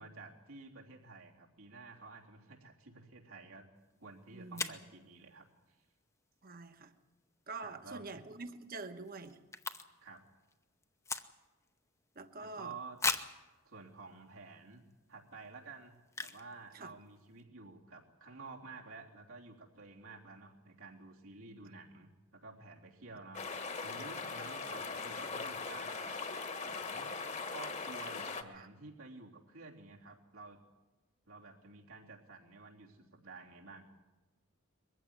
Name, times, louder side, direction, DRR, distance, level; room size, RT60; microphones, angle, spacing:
voice 1, 0.0-3.7 4.0-5.8 7.6-8.2 10.0-10.2 12.4-13.0 13.7-14.8 15.1-23.4 23.8-26.2 26.6-27.1 27.5-30.6 31.3-33.9, right 3 dB, 85° right, -1 dB, 3.4 m, -52 dB
sound 1, 3.9-4.0 4.5-4.9 7.8-8.1 8.4-8.5 8.7-10.2 10.4-11.7 12.1-12.2 13.0-13.4 14.1-14.2 14.7-14.9 16.1-16.5 16.8-16.9 17.1-17.4, left 4 dB, 15° left, 0.8 m, -38 dB
voice 2, 4.3-4.7 6.4-6.9 7.5-9.4 12.2-12.7 16.7-16.9 24.4-24.5 28.5-28.7, right 3 dB, 45° right, 8 dB, 1.3 m, -46 dB
sound 2, 23.3-28.4, left 4 dB, 35° left, 1.4 m, -40 dB
22.0 x 15.0 x 9.7 m, 1.2 s
head